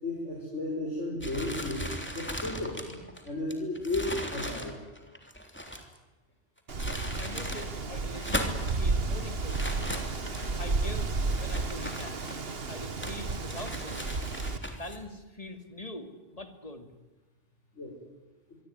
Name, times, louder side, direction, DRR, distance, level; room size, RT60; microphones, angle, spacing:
voice 1, 0.0-4.8 17.7-18.0, left 2 dB, 80° left, -1 dB, 5.5 m, -34 dB
sound 1, 1.2-6.0 6.6-7.7 8.1-8.8 9.5-10.7 11.3-12.6 13.0-15.0, equal, 10° left, 3.3 m, -38 dB
Wind, 6.7-14.6, right 3 dB, 55° right, 1.8 m, -32 dB
voice 2, 7.2-9.8 10.6-11.1 11.4-12.3 12.7-14.1 14.7-16.9, left 1 dB, 30° left, 7 dB, 2.7 m, -43 dB
25.0 x 23.5 x 9.6 m, 1.1 s
omnidirectional pair, 1.2 m